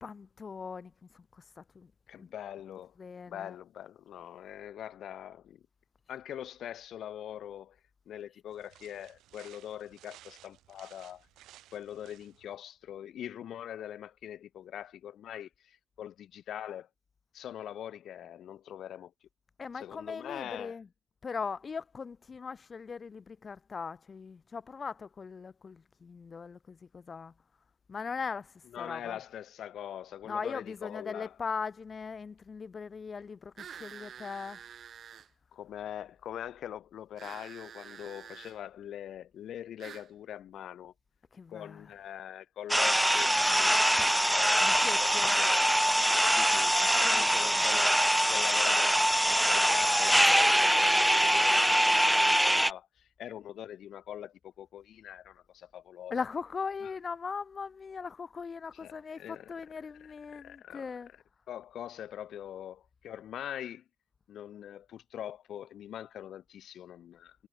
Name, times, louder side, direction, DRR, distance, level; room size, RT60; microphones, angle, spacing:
voice 1, 0.0-1.9 2.2-2.3 3.0-3.6 19.6-20.9 21.2-27.3 27.9-29.2 30.2-34.6 41.3-41.9 44.6-45.4 46.8-47.3 56.1-61.1, left 5 dB, 25° left, 2.5 m, -39 dB
voice 2, 2.1-2.9 3.3-5.6 6.1-7.8 8.1-11.3 11.7-16.9 17.3-19.1 19.8-20.8 28.7-31.3 35.5-40.9 41.5-45.5 46.3-56.1 58.8-59.5 60.3-60.9 61.5-63.8 64.3-67.5, left 10 dB, 55° left, 2.7 m, -43 dB
sound 1, 8.5-12.6, right 14 dB, 75° right, 5.9 m, -57 dB
sound 2, 33.6-35.3 37.2-38.6 39.8-40.1, right 8 dB, 40° right, 3.9 m, -48 dB
sound 3, 42.7-52.7, equal, ahead, 0.3 m, -24 dB
cardioid pair, 155°, 0 cm